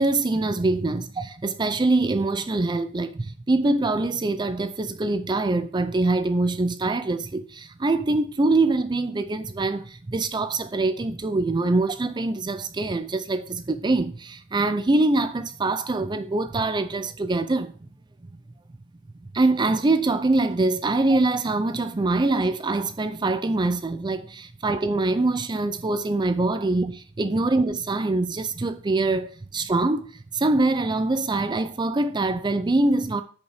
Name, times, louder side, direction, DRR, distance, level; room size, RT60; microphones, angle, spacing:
voice 1, 0.0-17.7 19.3-30.1 30.3-33.2, right 2 dB, 20° right, 0.4 m, -24 dB
8.0 x 5.3 x 4.8 m
head